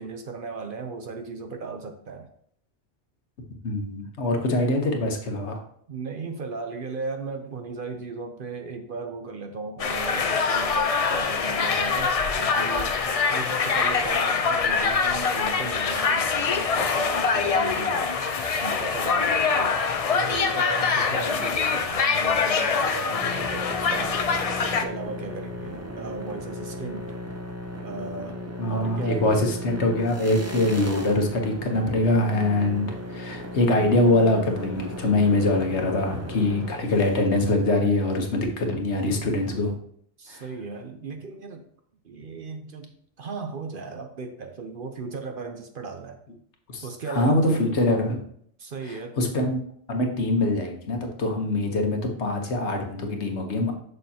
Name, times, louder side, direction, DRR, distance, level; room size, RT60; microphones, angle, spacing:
voice 1, 0.0-2.3 5.9-18.1 18.6-19.8 20.0-24.2 24.6-27.2 27.8-28.4 28.7-29.4 40.2-41.7 42.0-42.9 43.2-46.2 46.8-47.7 48.6-49.2, right 4 dB, 55° right, 5 dB, 0.8 m, -36 dB
voice 2, 3.6-5.6 28.6-39.7 40.3-40.4 46.7-48.2 48.9-49.6 49.9-53.7, left 2 dB, 70° left, 3 dB, 1.4 m, -24 dB
sound 1, 9.8-24.8, left 5 dB, 50° left, 0.4 m, -24 dB
sound 2, 22.6-37.2, left 1 dB, 15° right, 0.6 m, -36 dB
6.6 x 6.6 x 2.8 m, 0.64 s
omnidirectional pair, 1.2 m